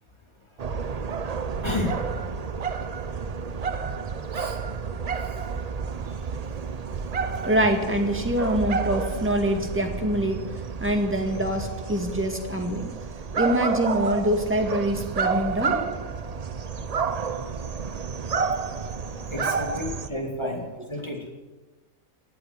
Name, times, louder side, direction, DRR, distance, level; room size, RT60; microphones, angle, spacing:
sound 1, 0.6-20.1, right 5 dB, 40° right, 0.5 m, -30 dB
voice 1, 1.6-2.0 4.3-4.6 5.2-5.3 18.7-18.8 19.2-20.6 20.9-21.2, left 2 dB, 20° left, 1 dB, 2.8 m, -31 dB
voice 2, 7.4-10.4 10.8-12.9 13.4-15.9 20.4-20.5, equal, 10° right, 3 dB, 1.9 m, -25 dB
17.0 x 8.5 x 9.1 m, 1.2 s
omnidirectional pair, 1.5 m